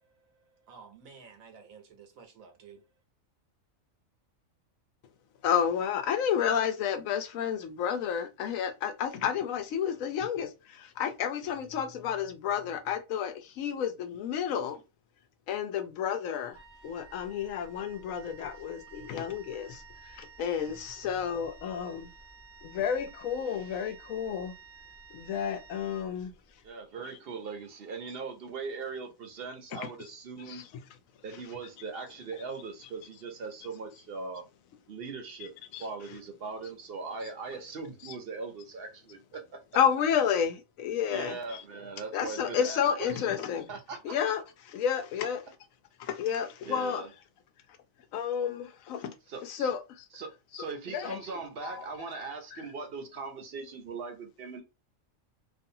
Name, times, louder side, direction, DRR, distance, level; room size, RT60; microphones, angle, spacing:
voice 1, 0.6-2.8, right 5 dB, 90° right, 1.2 m, -52 dB
voice 2, 5.4-14.8 15.5-16.6 16.8-22.1 22.6-24.5 25.1-26.3 29.7-29.9 30.5-30.7 35.7-35.9 39.7-41.6 42.1-43.7 44.0-45.4 46.0-47.0 48.1-49.1 49.4-50.0 50.5-50.6 50.9-51.2 51.6-51.9 52.5-52.6, left 8 dB, 80° left, 1.0 m, -31 dB
Wind instrument woodwind instrument, 16.5-26.6, right 5 dB, 15° right, 0.7 m, -52 dB
voice 3, 26.6-30.6 31.2-34.5 34.9-39.6 41.1-43.3 43.7-44.1 46.6-47.1 49.3-49.7 50.1-54.6, right 4 dB, 55° right, 0.8 m, -40 dB
2.6 x 2.5 x 2.6 m
omnidirectional pair, 1.4 m